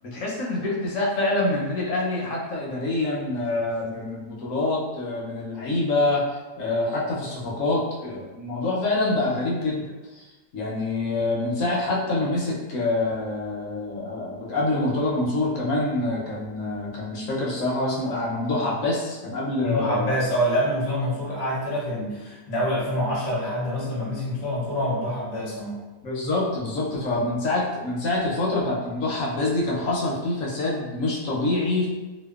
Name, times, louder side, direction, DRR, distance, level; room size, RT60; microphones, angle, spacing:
voice 1, 0.0-6.2 6.6-10.3 10.5-20.1 26.0-31.9, left 2 dB, 65° left, -4 dB, 0.9 m, -26 dB
voice 2, 19.6-25.8, equal, 45° left, -5 dB, 0.5 m, -26 dB
2.7 x 2.1 x 2.3 m, 1.2 s
omnidirectional pair, 1.7 m